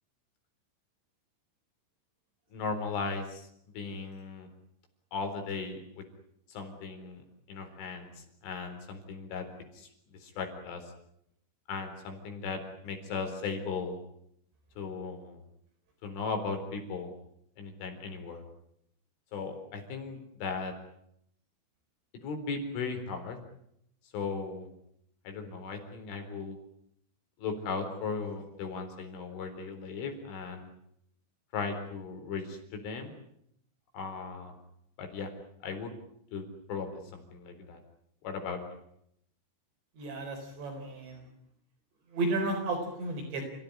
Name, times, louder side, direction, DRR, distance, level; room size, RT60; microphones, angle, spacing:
voice 1, 2.5-3.5 3.7-4.5 5.1-6.0 6.5-8.1 8.4-9.5 9.7-9.9 10.2-10.8 11.7-14.0 14.8-15.4 16.0-17.1 17.6-18.4 19.3-20.7 22.2-23.4 24.1-24.7 25.2-26.6 27.4-30.7 31.5-33.2 33.9-34.5 35.0-35.3 35.6-35.9 36.3-36.4 36.7-37.8 38.2-38.6, left 4 dB, 70° left, 6 dB, 6.6 m, -37 dB
voice 2, 40.0-41.2 42.1-43.5, right 2 dB, 60° right, 4 dB, 6.3 m, -33 dB
30.0 x 16.5 x 10.0 m, 0.74 s
omnidirectional pair, 5.7 m